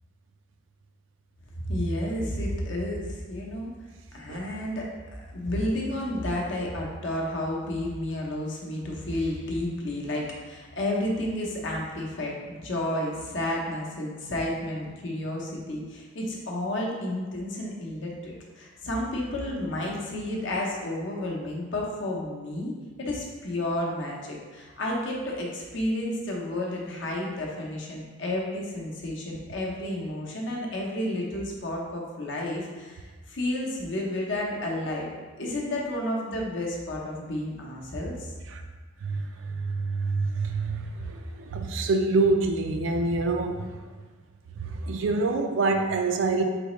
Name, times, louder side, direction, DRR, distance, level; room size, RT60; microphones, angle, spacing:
voice 1, 1.6-3.7 4.1-22.7 23.0-35.1 35.4-38.3, left 1 dB, 60° left, -2 dB, 0.7 m, -31 dB
voice 2, 39.0-43.8 44.6-46.4, right 3 dB, 65° right, 5 dB, 0.4 m, -26 dB
4.0 x 3.4 x 3.0 m, 1.4 s
head